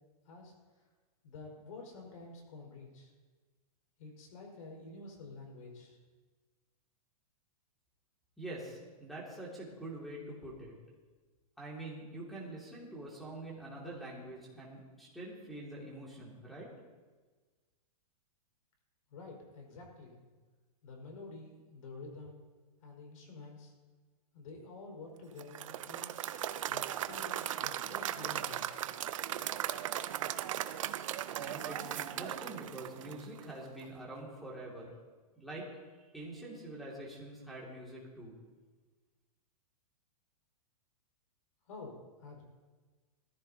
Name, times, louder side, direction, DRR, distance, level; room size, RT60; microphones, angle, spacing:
voice 1, 1.2-3.1 4.0-6.0 19.1-20.2 20.8-22.4 22.8-23.7 24.3-26.1 26.7-28.8 41.7-42.4, left 3 dB, 60° left, 0 dB, 4.9 m, -49 dB
voice 2, 8.4-10.8 11.6-16.7 31.4-34.9 35.4-35.7 36.1-38.4, right 1 dB, ahead, -4 dB, 2.3 m, -45 dB
Applause / Crowd, 25.4-33.6, right 11 dB, 55° right, 0.6 m, -37 dB
19.5 x 14.5 x 2.8 m, 1.3 s
supercardioid pair, 170°, 20 cm